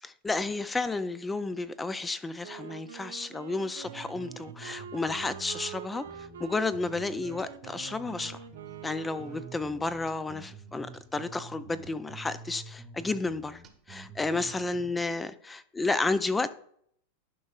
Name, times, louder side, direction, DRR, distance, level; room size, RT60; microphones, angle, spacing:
voice 1, 0.0-8.4 8.8-13.6 13.9-16.5, left 3 dB, 10° left, 0.3 m, -32 dB
Wind instrument woodwind instrument, 2.4-10.0, right 9 dB, 90° right, 0.6 m, -45 dB
sound 1, 3.8-14.9, right 4 dB, 30° right, 0.9 m, -48 dB
12.0 x 5.3 x 2.4 m
supercardioid pair, 140°, 0 cm